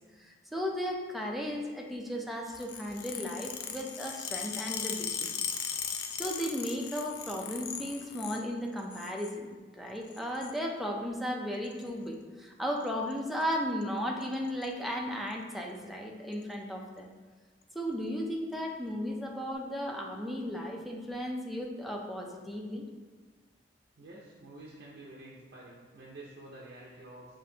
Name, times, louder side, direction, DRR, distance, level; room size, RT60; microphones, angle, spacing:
voice 1, 0.2-5.3 6.1-17.1 17.7-22.9, equal, ahead, 0 dB, 0.5 m, -35 dB
sound 1, 2.5-8.4 8.8-9.3 10.1-10.6 11.6-11.9 12.8-13.1 13.4-13.5 13.8-13.9 14.2-14.7 15.3-15.4 16.3-16.4, left 7 dB, 70° left, 0.4 m, -38 dB
voice 2, 24.0-27.3, right 2 dB, 65° right, -5 dB, 0.6 m, -49 dB
7.1 x 2.6 x 2.7 m, 1.4 s
head